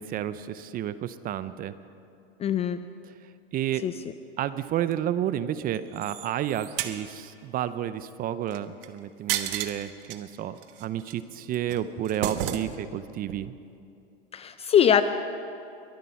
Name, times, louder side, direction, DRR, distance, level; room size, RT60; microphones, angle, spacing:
voice 1, 0.0-1.7 3.1-3.2 3.5-3.8 4.4-13.5, right 11 dB, 30° right, 14 dB, 0.5 m, -31 dB
voice 2, 2.4-2.8 3.8-3.9 14.3-15.0, left 9 dB, 20° left, 11 dB, 0.4 m, -22 dB
sound 1, 5.7-7.0 8.5-8.9 9.3-10.2 10.6-11.1 11.5-13.0 13.3-13.4, right 11 dB, 65° right, 1.2 m, -33 dB
23.0 x 9.2 x 5.8 m, 2.6 s
hypercardioid pair, 115°, 30 cm